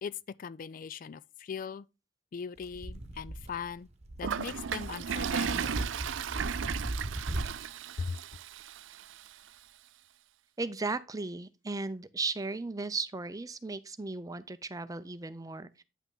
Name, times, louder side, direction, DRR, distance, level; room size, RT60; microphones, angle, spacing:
voice 1, 0.0-1.8 2.3-3.9 4.2-5.8 8.0-8.2, left 6 dB, 45° left, 0.3 m, -39 dB
sound 1, 2.6-7.6, right 1 dB, 35° right, 1.2 m, -38 dB
Toilet flush, 4.2-9.3, right 7 dB, 75° right, 0.4 m, -35 dB
voice 2, 10.6-15.8, right 3 dB, 20° right, 0.5 m, -36 dB
9.4 x 5.8 x 3.8 m
head